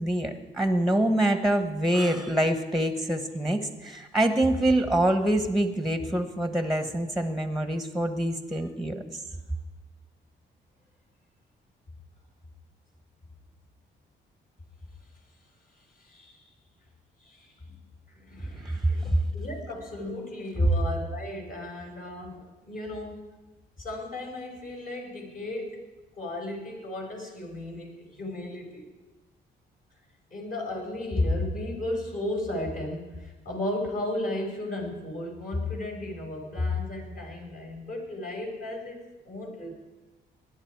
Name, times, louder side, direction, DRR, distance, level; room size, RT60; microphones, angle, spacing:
voice 1, 0.0-9.2 18.6-18.9, right 1 dB, ahead, 7 dB, 1.2 m, -25 dB
voice 2, 16.0-16.4 17.2-17.7 18.1-23.2 23.8-25.8 26.2-28.9 30.3-39.0 39.2-39.7, left 2 dB, 45° left, 0 dB, 5.4 m, -33 dB
19.5 x 11.0 x 4.7 m, 1.2 s
cardioid pair, 90°, 20 cm